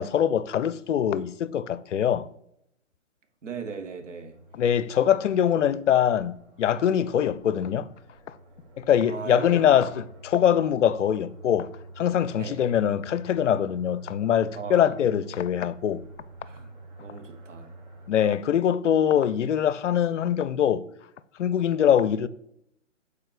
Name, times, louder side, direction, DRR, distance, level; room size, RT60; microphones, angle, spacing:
voice 1, 0.0-2.3 4.5-7.9 8.8-11.7 12.0-16.0 18.1-20.9 21.4-22.3, left 9 dB, 65° left, 0.5 m, -23 dB
voice 2, 3.4-4.4 9.1-10.0 12.3-12.6 14.6-15.2 16.4-16.7 17.0-17.7, right 5 dB, 70° right, 1.3 m, -38 dB
sound 1, 4.3-18.1, right 2 dB, 35° right, 1.5 m, -47 dB
5.5 x 4.0 x 4.9 m
hypercardioid pair, 145°, 38 cm